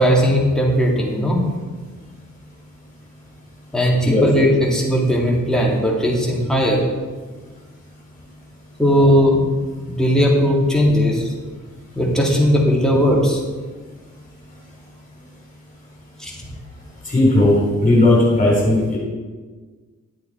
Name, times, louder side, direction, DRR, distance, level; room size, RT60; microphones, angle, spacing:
voice 1, 0.0-1.4 3.7-6.8 8.8-9.4 9.9-11.3 12.0-13.4 16.2-16.4, equal, ahead, -3 dB, 2.0 m, -17 dB
voice 2, 17.1-19.0, left 1 dB, 25° left, -5 dB, 3.5 m, -16 dB
11.0 x 8.2 x 4.3 m, 1.4 s
wide cardioid pair, 135°, 30 cm